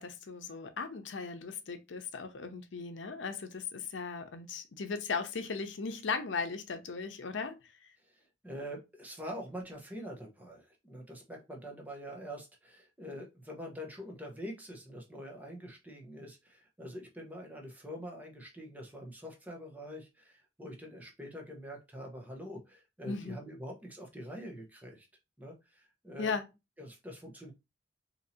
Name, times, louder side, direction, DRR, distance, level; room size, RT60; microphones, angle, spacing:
voice 1, 0.0-7.5 23.1-23.4 26.2-26.4, left 5 dB, 85° left, 0.6 m, -37 dB
voice 2, 8.0-25.1 25.4-26.4 26.8-27.5, equal, 10° right, 0.8 m, -45 dB
2.8 x 2.7 x 4.1 m
head